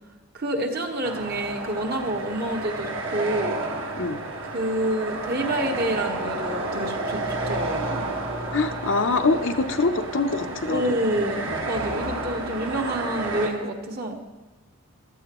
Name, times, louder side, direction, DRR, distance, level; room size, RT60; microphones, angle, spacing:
voice 1, 0.3-3.6 4.4-8.1 10.7-14.2, right 1 dB, 45° right, 3 dB, 1.2 m, -28 dB
sound 1, 1.0-13.5, right 2 dB, 60° right, 1.6 m, -31 dB
voice 2, 8.5-11.0, left 3 dB, 55° left, 7 dB, 0.7 m, -24 dB
15.5 x 13.0 x 3.0 m, 1.2 s
head